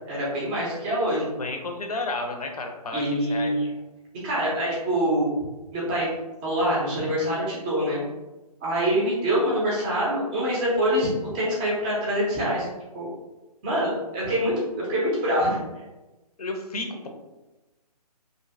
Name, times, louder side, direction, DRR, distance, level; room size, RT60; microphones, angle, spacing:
voice 1, 0.0-1.3 2.9-3.7 4.2-5.3 5.7-6.1 6.4-8.0 8.6-12.7 12.9-13.1 13.6-15.6, equal, 10° right, -5 dB, 0.5 m, -25 dB
voice 2, 1.4-3.0 3.3-3.5 16.4-17.1, left 2 dB, 65° left, 4 dB, 0.5 m, -31 dB
2.6 x 2.5 x 2.4 m, 1.1 s
figure-of-eight pair, 140°, 21 cm